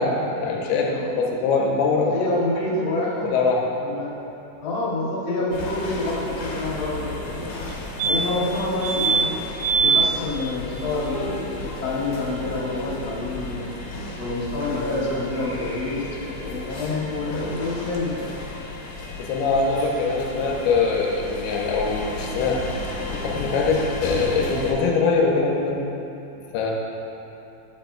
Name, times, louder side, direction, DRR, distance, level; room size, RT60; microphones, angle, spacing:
voice 1, 0.0-2.1 3.2-3.7 19.2-22.7 23.1-25.8 26.5-26.7, left 4 dB, 90° left, -1 dB, 2.7 m, -22 dB
voice 2, 2.1-3.3 3.8-4.1 4.6-7.6 8.0-9.3 9.8-13.7 14.2-18.3, left 2 dB, 40° left, -8 dB, 2.0 m, -27 dB
sound 1, 5.5-24.7, left 2 dB, 70° left, 2.2 m, -34 dB
sound 2, 7.7-7.8 8.0-8.5 8.8-9.2 9.6-10.1 12.4-12.5 12.7-12.8, right 5 dB, 90° right, 2.6 m, -21 dB
11.5 x 7.5 x 2.2 m, 2.8 s
omnidirectional pair, 4.5 m